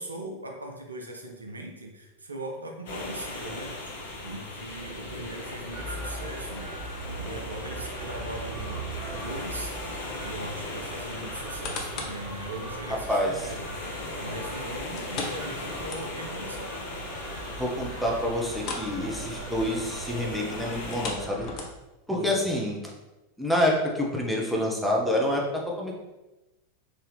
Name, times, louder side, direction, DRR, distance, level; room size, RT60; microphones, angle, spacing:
voice 1, 0.0-3.9 4.2-6.7 7.2-9.7 10.2-13.7 14.2-16.9 22.1-22.6, right 1 dB, 80° right, 2 dB, 0.6 m, -39 dB
sound 1, 2.9-21.1, left 2 dB, 60° left, 1.0 m, -39 dB
sound 2, 5.7-21.7, right 2 dB, 30° right, 1.2 m, -40 dB
sound 3, 11.3-12.3 12.8-12.9 15.0-16.4 16.8-16.9 17.3-17.4 18.5-19.0 19.2-19.5 20.8-22.0 22.6-22.7, left 3 dB, 40° left, 0.7 m, -37 dB
voice 2, 17.6-21.5 22.1-22.8 23.4-25.4 25.8-25.9, left 1 dB, ahead, -2 dB, 0.8 m, -27 dB
3.9 x 2.7 x 3.3 m, 1.0 s
figure-of-eight pair, 85°, 0 cm